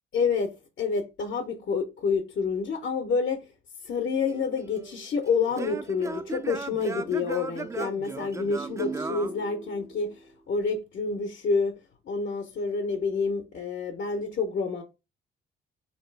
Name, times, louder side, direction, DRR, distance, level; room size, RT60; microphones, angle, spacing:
voice 1, 0.1-3.4 3.8-11.8 12.1-14.8, left 5 dB, 60° left, 0.7 m, -28 dB
Singing / Plucked string instrument, 4.3-10.1, right 4 dB, 15° right, 0.3 m, -37 dB
3.8 x 2.9 x 3.2 m
cardioid pair, 90°, 20 cm